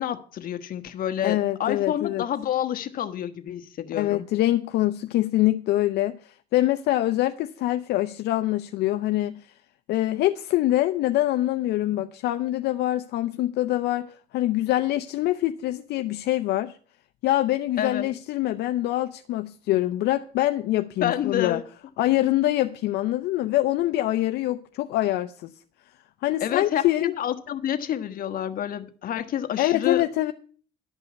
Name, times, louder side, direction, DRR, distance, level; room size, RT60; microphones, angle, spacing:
voice 1, 0.0-4.3 17.8-18.1 21.0-21.6 26.4-30.1, left 10 dB, 55° left, 1.2 m, -28 dB
voice 2, 1.2-2.2 3.9-9.4 9.9-16.7 17.2-21.6 22.0-25.5 26.2-27.1 29.6-30.3, left 15 dB, 80° left, 0.6 m, -24 dB
11.5 x 5.5 x 8.2 m
cardioid pair, 110°, 17 cm